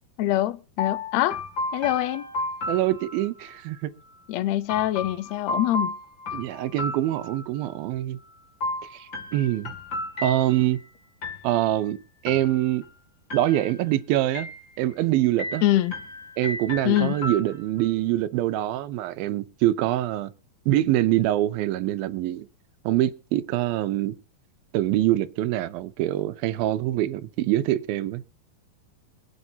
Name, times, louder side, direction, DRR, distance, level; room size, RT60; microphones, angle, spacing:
voice 1, 0.2-1.4 1.7-2.3 4.3-6.0 15.6-15.9 16.8-17.2, left 14 dB, 85° left, 1.5 m, -24 dB
sound 1, 0.8-3.5 4.7-7.7 8.6-10.8 11.2-11.8 12.3-12.9 13.3-13.9 14.3-15.0 15.4-17.9, left 2 dB, 35° left, 2.7 m, -34 dB
voice 2, 2.7-3.9 6.3-8.2 8.9-9.7 10.2-10.8 11.4-12.0 12.2-12.8 13.3-15.6 16.4-20.3 20.7-22.5 22.8-24.2 24.7-28.2, right 14 dB, 85° right, 2.6 m, -24 dB
26.5 x 8.9 x 2.8 m
omnidirectional pair, 4.1 m